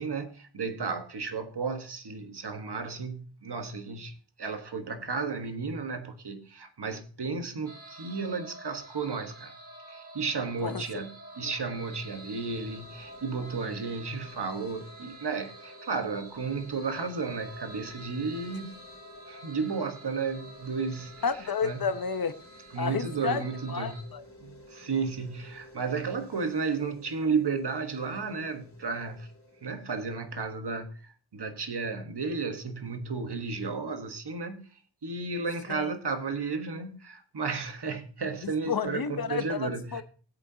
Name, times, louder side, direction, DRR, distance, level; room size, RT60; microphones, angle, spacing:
voice 1, 0.0-9.5 9.9-18.8 19.3-21.1 21.6-21.8 22.7-24.2 24.4-29.3 29.6-34.7 35.0-40.0, right 4 dB, 70° right, 1.4 m, -33 dB
sound 1, 7.7-24.0, right 1 dB, 35° right, 2.6 m, -49 dB
voice 2, 10.6-11.0 11.4-11.5 21.2-22.3 22.8-24.2 35.7-36.0 38.4-40.0, left 6 dB, 55° left, 0.9 m, -31 dB
sound 2, 11.8-30.9, left 1 dB, 40° left, 3.0 m, -54 dB
17.5 x 8.4 x 2.8 m
wide cardioid pair, 85°, 42 cm